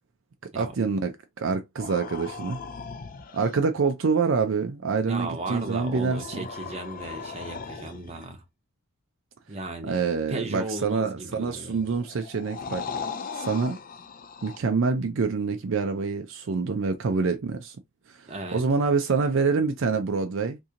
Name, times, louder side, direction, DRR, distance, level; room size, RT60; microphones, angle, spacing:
voice 1, 0.5-2.6 3.3-6.5 9.8-12.8 13.3-13.8 14.4-17.8 18.2-20.6, right 4 dB, 60° right, 0.4 m, -26 dB
sound 1, 1.8-3.6 5.2-8.3 11.2-14.6, left 5 dB, 40° left, 0.4 m, -39 dB
voice 2, 5.1-8.4 9.5-10.0 10.3-11.8 18.3-18.6, right 2 dB, 30° right, 0.7 m, -36 dB
2.8 x 2.6 x 3.7 m
head